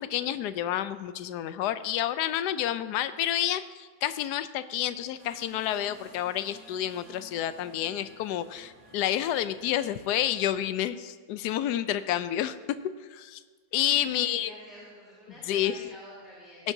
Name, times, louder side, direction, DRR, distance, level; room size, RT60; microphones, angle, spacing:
voice 1, 0.0-12.6 13.1-13.4 13.7-14.5 15.5-15.8 16.6-16.7, left 12 dB, 70° left, 13 dB, 1.1 m, -29 dB
sound 1, 5.2-10.7, right 2 dB, 40° right, 2.1 m, -54 dB
voice 2, 13.9-16.7, right 1 dB, ahead, -10 dB, 3.3 m, -48 dB
17.5 x 9.8 x 2.7 m, 1.5 s
omnidirectional pair, 2.0 m